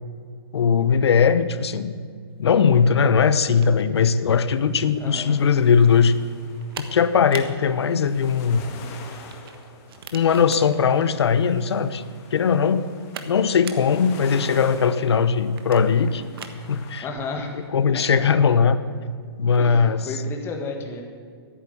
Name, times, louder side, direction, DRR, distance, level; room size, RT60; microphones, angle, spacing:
voice 1, 0.5-1.9 2.4-6.1 6.8-8.6 10.1-12.0 12.3-12.9 13.3-16.2 16.7-17.1 17.7-18.8 19.4-20.1, left 6 dB, 75° left, 13 dB, 0.9 m, -19 dB
sound 1, 2.4-19.8, right 6 dB, 60° right, 1.4 m, -45 dB
sound 2, 4.3-17.0, left 5 dB, 35° left, 1.9 m, -46 dB
voice 2, 5.0-5.4 17.0-17.5 17.9-18.3 19.6-21.0, left 4 dB, 15° left, 3 dB, 1.7 m, -33 dB
11.0 x 9.3 x 9.6 m, 2.1 s
hypercardioid pair, 145°, 14 cm